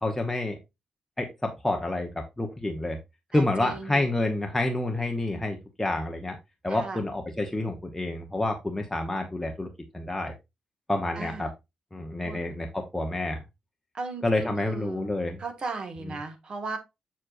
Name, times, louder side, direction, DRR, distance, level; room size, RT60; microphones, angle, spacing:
voice 1, 0.0-0.6 1.2-3.0 3.3-6.4 6.6-9.7 9.9-10.3 10.9-11.5 11.9-13.4 14.2-15.4 16.1-16.2, left 2 dB, 10° left, 2 dB, 0.8 m, -28 dB
voice 2, 3.3-4.1 6.7-7.0 11.2-11.5 12.2-12.4 13.9-15.1 15.4-16.8, right 4 dB, 40° right, 6 dB, 1.7 m, -36 dB
7.4 x 6.2 x 2.5 m, 0.22 s
wide cardioid pair, 155°, 2 cm